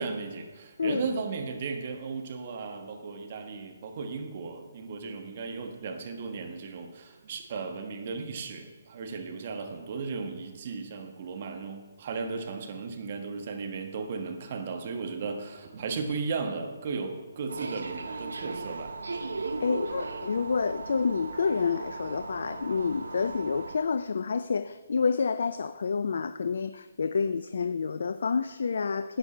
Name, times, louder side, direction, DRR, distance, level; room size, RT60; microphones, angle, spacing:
voice 1, 0.0-19.0, right 4 dB, 45° right, 5 dB, 1.3 m, -35 dB
sound 1, 17.5-23.8, right 3 dB, 70° right, 1.0 m, -37 dB
voice 2, 19.6-29.2, left 5 dB, 60° left, 12 dB, 0.3 m, -28 dB
11.5 x 8.1 x 4.3 m, 1.3 s
figure-of-eight pair, 140°, 0 cm